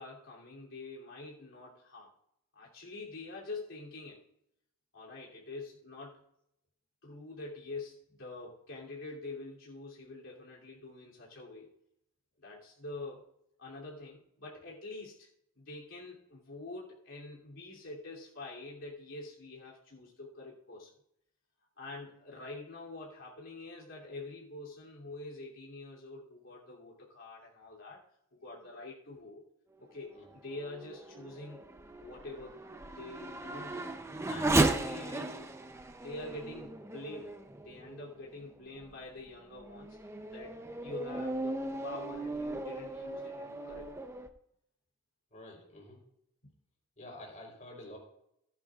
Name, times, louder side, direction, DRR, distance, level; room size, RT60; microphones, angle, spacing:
voice 1, 0.0-2.1 2.5-4.2 4.9-6.2 7.0-11.7 12.4-13.2 13.6-15.3 15.6-20.9 21.8-28.0 28.3-29.4 29.8-31.7 32.0-35.5 36.0-37.3 37.6-40.0 40.3-40.6 40.8-43.9, left 2 dB, 75° left, -4 dB, 3.0 m, -46 dB
Race car auto racing / Accelerating revving vroom, 30.3-38.2 38.8-38.9 39.5-44.3, right 2 dB, 15° right, 0.6 m, -36 dB
voice 2, 45.3-46.0 47.0-48.0, left 1 dB, 35° left, -1 dB, 3.9 m, -49 dB
16.0 x 10.5 x 2.4 m, 0.76 s
head